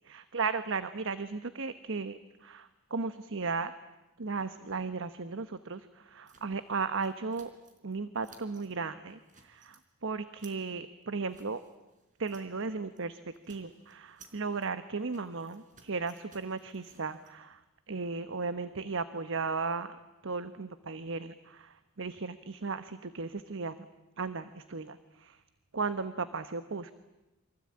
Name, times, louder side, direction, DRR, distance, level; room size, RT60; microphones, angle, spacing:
voice 1, 0.0-3.7 4.2-7.5 7.8-11.6 12.2-17.6 17.9-20.0 20.2-23.8 24.2-25.4 25.7-26.9, right 4 dB, 65° right, 12 dB, 1.0 m, -36 dB
sound 1, 6.3-8.0 8.2-8.7 9.1-9.8 10.2-12.7 12.9-13.1 13.3-17.3, right 4 dB, 40° right, 4.0 m, -61 dB
28.5 x 24.0 x 8.7 m, 1.0 s
head